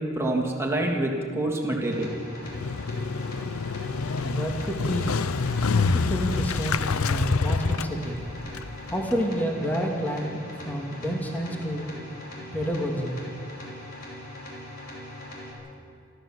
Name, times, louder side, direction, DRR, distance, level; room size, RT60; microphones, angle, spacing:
voice 1, 0.0-2.2, right 1 dB, 10° right, -1 dB, 2.8 m, -26 dB
sound 1, 1.8-15.5, left 1 dB, 45° left, 5.3 m, -41 dB
Motorcycle, 2.4-9.2, left 4 dB, 75° left, 0.6 m, -27 dB
voice 2, 4.2-5.2 5.7-8.2 8.9-11.9 12.5-13.2, equal, 10° left, 0 dB, 2.3 m, -29 dB
27.0 x 13.5 x 7.5 m, 2.3 s
head